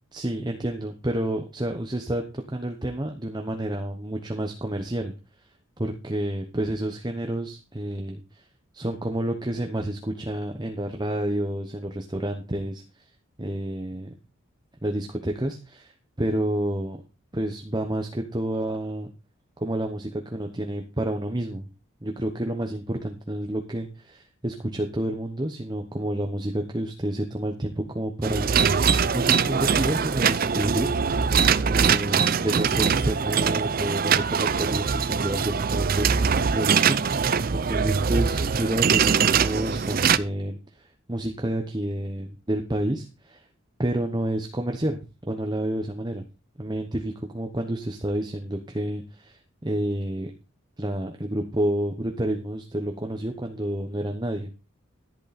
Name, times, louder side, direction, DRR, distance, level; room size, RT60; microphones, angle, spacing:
voice 1, 0.1-5.1 5.8-8.5 8.7-12.8 13.4-14.1 14.8-17.0 17.3-19.1 19.6-21.7 22.0-28.8 29.1-30.9 31.6-43.4 43.8-45.0 45.3-46.2 46.6-50.3 50.8-54.5, right 1 dB, 20° right, 4 dB, 1.0 m, -29 dB
sound 1, 28.2-40.2, right 6 dB, 45° right, 0.5 m, -22 dB
14.0 x 8.4 x 4.2 m, 0.32 s
head